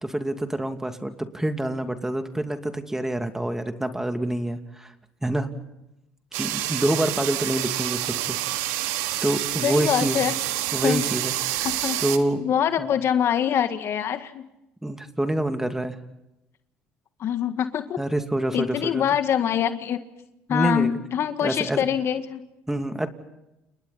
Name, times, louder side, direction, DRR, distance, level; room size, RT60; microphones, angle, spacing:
voice 1, 0.0-4.9 5.2-5.5 6.3-8.4 9.2-10.2 10.7-11.7 12.0-12.4 12.8-12.9 14.8-16.0 18.0-19.0 20.5-21.0 21.4-21.8 22.7-23.1, right 1 dB, 10° right, 7 dB, 2.6 m, -26 dB
sound 1, 6.3-12.2, right 15 dB, 80° right, 1.6 m, -28 dB
voice 2, 9.6-10.3 10.8-11.0 11.6-12.0 12.4-14.4 17.2-18.0 18.5-20.0 20.5-22.4, left 9 dB, 55° left, 9 dB, 1.8 m, -24 dB
30.0 x 29.5 x 4.2 m, 0.90 s
hypercardioid pair, 70°, 5 cm